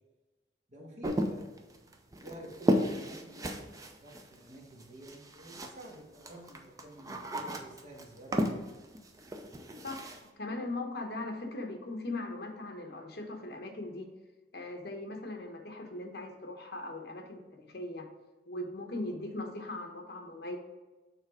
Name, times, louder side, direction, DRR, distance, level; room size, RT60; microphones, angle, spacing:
voice 1, 0.7-1.9 2.2-8.6, right 1 dB, 45° right, -2 dB, 1.6 m, -50 dB
sound 1, 1.0-6.0 6.2-10.2, equal, 20° right, 0.5 m, -34 dB
voice 2, 9.8-14.1 14.5-18.1 18.5-20.6, left 2 dB, 60° left, 3 dB, 1.1 m, -39 dB
6.5 x 3.9 x 4.9 m, 1.2 s
head